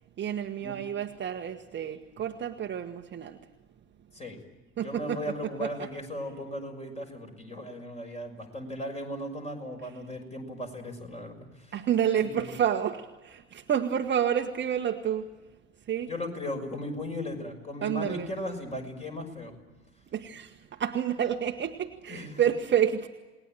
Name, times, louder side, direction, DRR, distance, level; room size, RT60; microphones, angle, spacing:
voice 1, 0.2-3.4 4.8-5.2 5.6-5.9 11.7-15.3 15.9-16.1 17.8-18.3 20.1-23.1, right 9 dB, 30° right, 1.5 m, -29 dB
voice 2, 4.8-11.7 12.2-12.5 16.1-19.5 22.1-22.4, left 1 dB, 15° left, 6.1 m, -37 dB
28.0 x 20.0 x 9.0 m
figure-of-eight pair, 75°, 38 cm